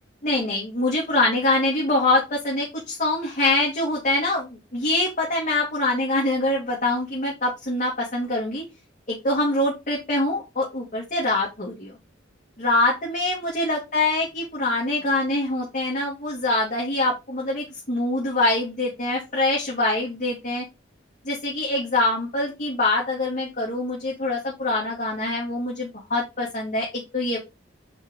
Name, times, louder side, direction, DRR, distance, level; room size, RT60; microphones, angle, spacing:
voice 1, 0.2-8.6 9.1-11.9 12.6-20.6 21.2-27.4, left 2 dB, 45° left, -4 dB, 2.2 m, -24 dB
6.0 x 4.5 x 4.0 m, 0.24 s
head